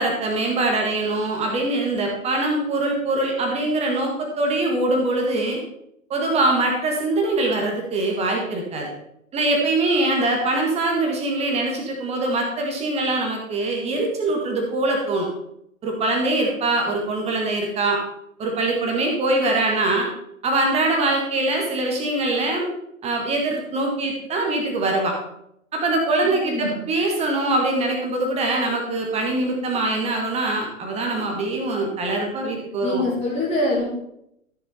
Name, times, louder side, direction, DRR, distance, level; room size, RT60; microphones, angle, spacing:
voice 1, 0.0-5.6 6.1-8.9 9.3-15.3 15.8-18.0 18.4-20.1 20.4-22.7 23.0-25.1 25.7-33.0, right 2 dB, 15° right, 1 dB, 1.7 m, -23 dB
voice 2, 26.4-26.8 32.8-33.9, left 1 dB, 15° left, -6 dB, 3.4 m, -24 dB
13.5 x 7.1 x 4.2 m, 0.76 s
figure-of-eight pair, 115°, 42 cm